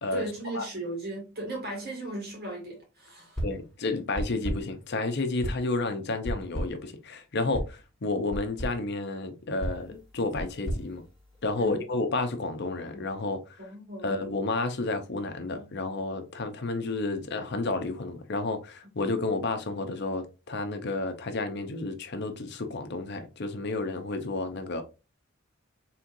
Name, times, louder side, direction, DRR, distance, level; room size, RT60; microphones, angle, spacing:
voice 1, 0.1-3.4 11.6-11.8 13.6-14.1, right 1 dB, 50° right, 2.1 m, -36 dB
voice 2, 3.4-11.0 11.4-13.4 14.0-24.8, left 3 dB, 55° left, 0.7 m, -31 dB
sound 1, 3.4-3.7 4.2-4.8 5.4-5.8 6.2-6.9 7.5-7.8 8.3-8.8 9.6-11.7, equal, ahead, 1.6 m, -35 dB
4.4 x 3.6 x 2.6 m
head